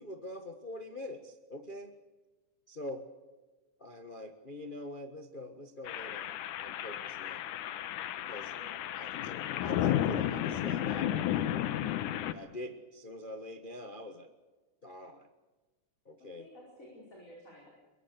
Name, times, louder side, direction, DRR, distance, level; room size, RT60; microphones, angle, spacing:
voice 1, 0.0-1.9 2.7-3.1 3.8-7.5 8.2-8.5 9.0-11.8 12.2-14.3 14.8-15.3 16.0-16.5, left 1 dB, 60° left, 6 dB, 0.5 m, -44 dB
sound 1, 5.9-12.3, left 11 dB, 80° left, 2.5 m, -33 dB
voice 2, 8.5-8.9 16.2-17.7, equal, 25° left, -3 dB, 5.4 m, -53 dB
23.0 x 22.5 x 6.6 m, 1.2 s
omnidirectional pair, 3.6 m